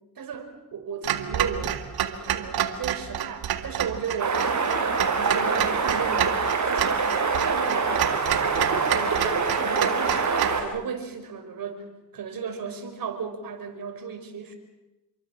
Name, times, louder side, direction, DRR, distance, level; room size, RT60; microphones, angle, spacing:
voice 1, 0.2-1.8 2.1-6.3 6.7-9.3 9.6-11.8 12.1-14.6, right 6 dB, 65° right, 7 dB, 5.3 m, -35 dB
Clock, 1.0-10.6, right 10 dB, 85° right, 2.1 m, -29 dB
sound 1, 4.2-10.6, right 4 dB, 50° right, 7.2 m, -25 dB
28.5 x 23.0 x 7.4 m, 0.99 s
cardioid pair, 85°, 36 cm